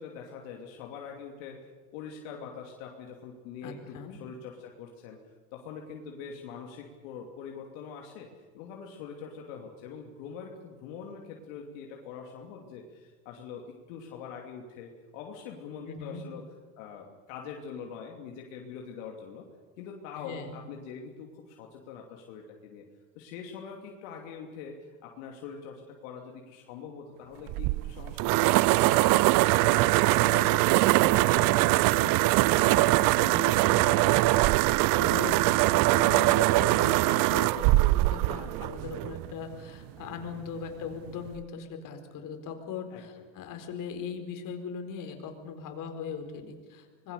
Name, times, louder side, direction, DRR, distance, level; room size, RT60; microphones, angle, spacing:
voice 1, 0.0-5.2 5.5-8.3 8.5-16.4 16.8-19.4 19.8-22.8 23.1-29.0 35.3-35.6 42.9-43.0, left 6 dB, 75° left, 1 dB, 2.9 m, -43 dB
voice 2, 3.6-4.1 15.9-16.2 20.2-20.5 30.2-34.3 35.0-47.1, left 6 dB, 55° left, 5 dB, 4.4 m, -40 dB
sound 1, 27.5-39.3, right 19 dB, 55° right, 0.7 m, -22 dB
25.5 x 20.5 x 6.9 m, 1.5 s
supercardioid pair, 90°, 39 cm